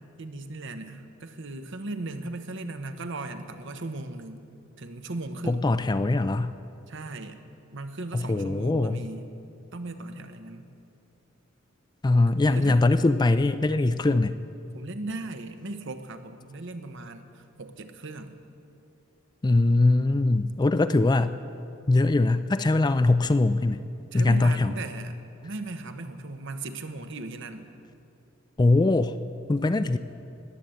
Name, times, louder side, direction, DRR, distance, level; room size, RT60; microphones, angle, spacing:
voice 1, 0.2-4.4 4.8-5.7 6.9-7.4 7.7-9.3 9.7-10.7 12.5-12.8 14.7-18.4 20.7-20.8 24.1-25.1 25.4-27.7, right 2 dB, 60° right, 8 dB, 1.0 m, -37 dB
voice 2, 5.4-6.5 8.1-9.1 12.0-14.4 19.4-21.4 21.9-23.8 24.1-24.7 28.6-29.2 29.5-30.0, left 2 dB, 20° left, 12 dB, 0.4 m, -22 dB
20.0 x 8.5 x 7.8 m, 2.6 s
head